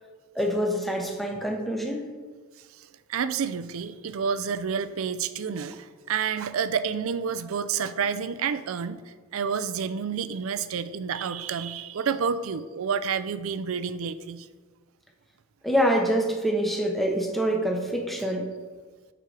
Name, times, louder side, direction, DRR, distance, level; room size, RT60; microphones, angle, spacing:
voice 1, 0.3-2.1 15.6-18.5, equal, ahead, 2 dB, 0.8 m, -25 dB
voice 2, 2.8-9.0 9.3-14.5, right 6 dB, 75° right, 13 dB, 0.4 m, -29 dB
6.6 x 6.2 x 4.7 m, 1.4 s
head